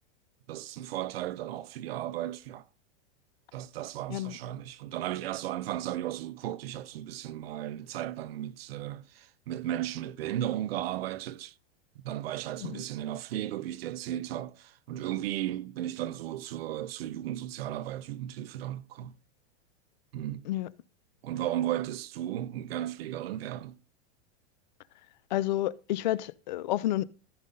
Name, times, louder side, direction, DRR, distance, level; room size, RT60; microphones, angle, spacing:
voice 1, 0.5-2.7 3.5-11.5 12.0-19.2 20.1-20.5 21.2-23.8, right 12 dB, 60° right, 0.7 m, -35 dB
voice 2, 25.3-27.0, left 14 dB, 40° left, 0.5 m, -30 dB
14.0 x 5.4 x 3.8 m
supercardioid pair, 180°, 34 cm